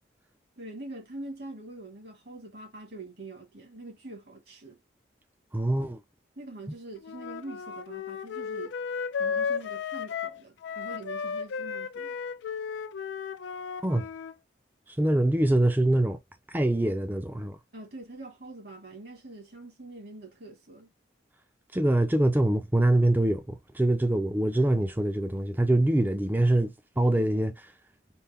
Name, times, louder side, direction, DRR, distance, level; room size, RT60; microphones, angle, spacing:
voice 1, 0.6-4.8 6.4-8.7 9.2-12.2 17.7-20.9, right 2 dB, 60° right, 1.6 m, -44 dB
voice 2, 5.5-6.0 13.8-14.1 14.9-16.2 16.5-17.6 21.7-27.7, right 1 dB, 10° right, 0.4 m, -24 dB
Wind instrument woodwind instrument, 7.0-14.3, left 6 dB, 80° left, 0.3 m, -34 dB
4.2 x 2.1 x 3.5 m
head